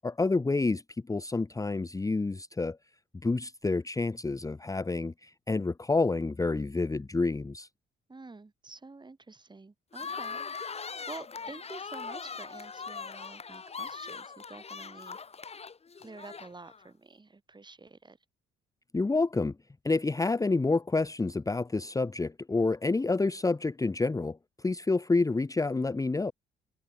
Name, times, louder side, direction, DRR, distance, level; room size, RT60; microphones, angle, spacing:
voice 1, 0.0-2.8 3.2-7.7 18.9-19.5 19.8-26.3, left 3 dB, 15° left, 1.0 m, -28 dB
voice 2, 8.1-10.4 10.7-15.2 16.0-18.2, right 3 dB, 20° right, 5.6 m, -48 dB
sound 1, 9.9-16.8, left 5 dB, 30° left, 1.4 m, -40 dB
cardioid pair, 90°, 20 cm